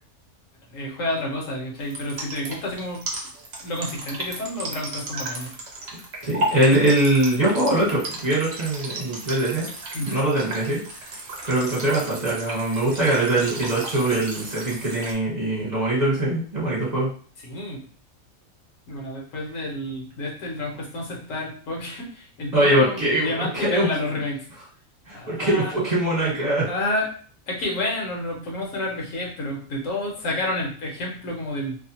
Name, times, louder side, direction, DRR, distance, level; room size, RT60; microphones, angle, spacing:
voice 1, 0.7-3.1 3.6-5.5 9.9-10.2 17.4-17.8 18.9-24.4 25.1-25.7 26.7-27.1 27.5-31.8, left 1 dB, 75° left, -1 dB, 1.2 m, -30 dB
sound 1, 1.8-15.1, right 1 dB, 55° right, 0.9 m, -34 dB
voice 2, 6.2-9.7 10.0-10.8 11.4-17.1 22.5-23.9 25.1-26.7, right 1 dB, 35° right, -7 dB, 1.2 m, -22 dB
2.8 x 2.2 x 2.8 m, 0.44 s
omnidirectional pair, 1.4 m